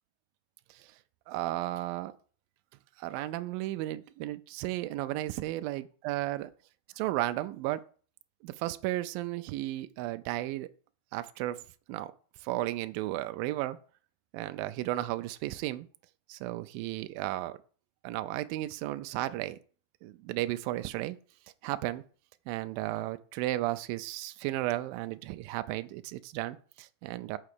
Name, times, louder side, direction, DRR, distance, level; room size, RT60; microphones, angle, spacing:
voice 1, 1.3-2.1 3.0-6.5 7.0-7.8 8.4-10.7 11.1-11.6 11.9-12.1 12.4-13.8 14.3-15.9 16.3-17.6 18.0-19.6 20.0-21.2 21.6-22.0 22.5-27.4, right 16 dB, 85° right, 10 dB, 2.0 m, -34 dB
6.6 x 6.0 x 6.6 m, 0.41 s
omnidirectional pair, 4.6 m